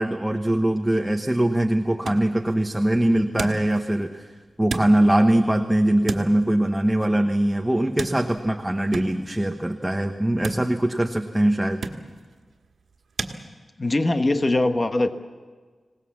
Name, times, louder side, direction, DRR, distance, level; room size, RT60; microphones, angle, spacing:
voice 1, 0.0-4.3 4.6-11.8, right 1 dB, 10° right, 4 dB, 1.1 m, -22 dB
sound 1, 0.9-13.4, right 4 dB, 85° right, 1.6 m, -38 dB
voice 2, 13.8-15.1, left 2 dB, 30° left, 8 dB, 1.1 m, -21 dB
25.5 x 18.5 x 7.3 m, 1.5 s
wide cardioid pair, 95°, 0 cm